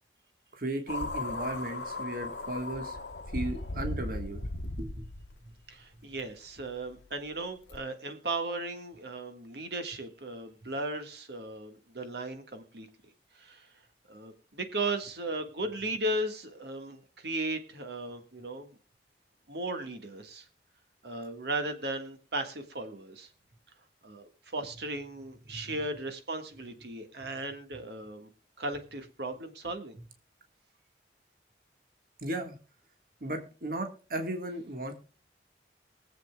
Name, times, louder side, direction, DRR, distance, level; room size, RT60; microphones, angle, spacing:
voice 1, 0.5-3.0 3.3-4.5 4.8-5.1 25.5-25.6 32.2-32.6 33.2-34.9, right 1 dB, 55° right, 5 dB, 1.5 m, -35 dB
sound 1, 0.9-5.4 6.2-6.3 7.7-7.8, left 2 dB, 85° left, 1.0 m, -36 dB
voice 2, 5.7-12.9 13.3-13.7 14.1-18.7 19.5-20.4 21.0-23.3 24.0-28.3 28.6-30.0, right 2 dB, 70° right, 7 dB, 1.6 m, -36 dB
23.0 x 7.8 x 2.3 m, 0.37 s
head